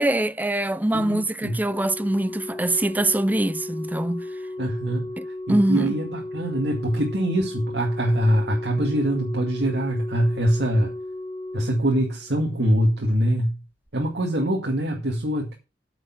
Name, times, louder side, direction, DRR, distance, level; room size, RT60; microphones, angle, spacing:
voice 1, 0.0-4.3 5.2-5.9, right 1 dB, 10° right, 0.5 m, -23 dB
voice 2, 0.9-1.6 4.6-5.0 5.5-10.9 11.5-13.6 13.9-15.5, equal, 75° right, 2.1 m, -23 dB
Organ, 1.7-12.6 13.7-13.9, left 1 dB, 20° left, 2.8 m, -35 dB
9.0 x 6.8 x 5.8 m
head